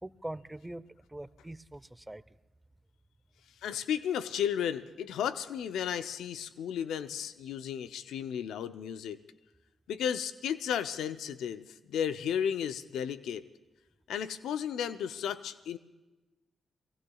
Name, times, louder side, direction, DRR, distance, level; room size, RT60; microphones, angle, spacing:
voice 1, 0.0-2.4, right 1 dB, 15° right, 17 dB, 0.7 m, -43 dB
voice 2, 3.6-9.2 9.9-13.4 14.1-15.8, left 8 dB, 80° left, 12 dB, 0.5 m, -34 dB
27.5 x 20.5 x 2.3 m, 1.1 s
hypercardioid pair, 40°, 0 cm